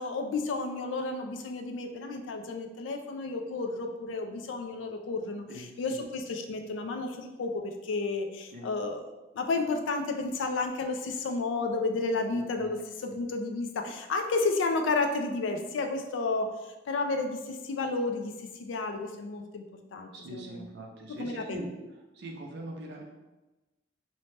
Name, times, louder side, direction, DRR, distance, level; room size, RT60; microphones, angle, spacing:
voice 1, 0.0-9.1 9.3-19.6 19.9-20.7 21.1-21.7, left 3 dB, 80° left, 6 dB, 0.4 m, -32 dB
voice 2, 5.5-6.0 8.5-8.7 20.1-21.7 22.2-23.0, right 1 dB, 65° right, 1 dB, 0.5 m, -42 dB
2.6 x 2.1 x 3.1 m, 1.1 s
head